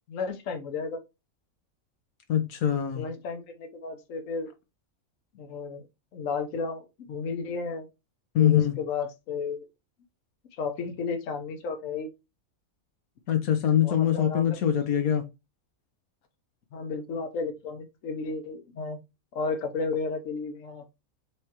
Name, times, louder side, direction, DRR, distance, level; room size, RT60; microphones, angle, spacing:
voice 1, 0.1-1.0 2.9-4.5 5.3-5.8 6.1-7.9 8.4-9.7 10.6-12.1 13.8-14.6 16.7-19.0 19.3-20.8, left 4 dB, 65° left, 1.2 m, -33 dB
voice 2, 2.3-3.1 8.3-8.7 13.3-15.2, left 10 dB, 85° left, 1.3 m, -23 dB
4.9 x 3.3 x 2.8 m
omnidirectional pair, 1.5 m